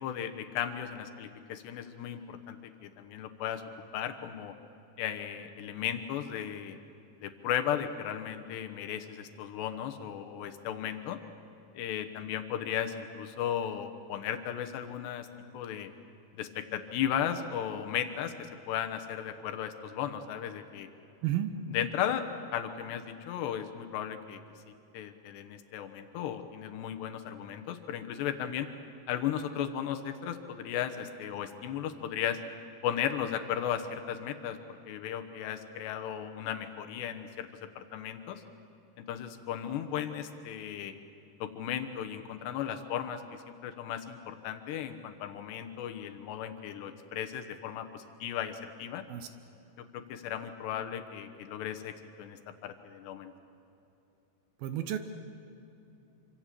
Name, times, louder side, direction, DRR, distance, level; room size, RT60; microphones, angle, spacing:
voice 1, 0.0-2.6 2.8-3.6 3.9-4.5 5.0-6.8 7.2-11.2 11.8-15.3 15.5-15.9 16.3-20.9 21.7-22.3 22.5-24.4 24.9-28.7 29.1-32.4 32.8-37.5 37.8-38.4 39.0-40.9 41.4-49.0 49.9-53.3, left 9 dB, 80° left, 7 dB, 3.3 m, -35 dB
voice 2, 21.2-21.5 49.1-49.3 54.6-55.0, right 12 dB, 70° right, 9 dB, 2.7 m, -31 dB
27.0 x 25.5 x 7.6 m, 2.9 s
omnidirectional pair, 4.9 m